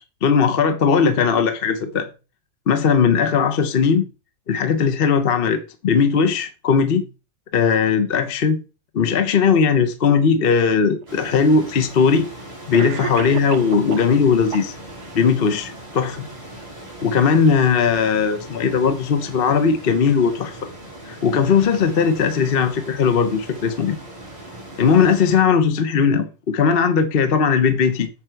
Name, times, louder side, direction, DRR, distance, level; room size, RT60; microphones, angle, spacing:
voice 1, 0.2-2.1 2.7-4.1 4.5-7.0 7.5-8.6 8.9-12.3 12.7-14.8 15.1-16.2 17.0-20.7 21.1-23.9 24.8-28.1, left 6 dB, 45° left, 0.8 m, -18 dB
Cough, 11.0-11.1 12.1-12.2 12.7-14.1 14.5-15.1, right 8 dB, 70° right, 1.3 m, -31 dB
sound 1, 11.1-25.4, right 1 dB, 20° right, 3.3 m, -39 dB
7.3 x 7.3 x 4.5 m
omnidirectional pair, 1.9 m